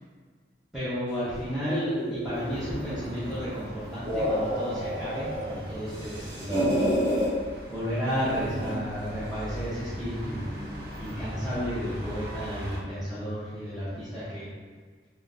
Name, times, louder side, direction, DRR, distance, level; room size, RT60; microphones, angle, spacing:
voice 1, 0.7-6.7 7.7-10.5 11.0-14.5, equal, ahead, -14 dB, 0.6 m, -32 dB
sound 1, 1.7-3.4 3.9-5.5 5.9-7.3 8.1-8.9, equal, 30° right, 1.1 m, -30 dB
sound 2, 2.3-12.8, equal, 55° right, 0.7 m, -41 dB
3.7 x 2.0 x 2.4 m, 1.5 s
head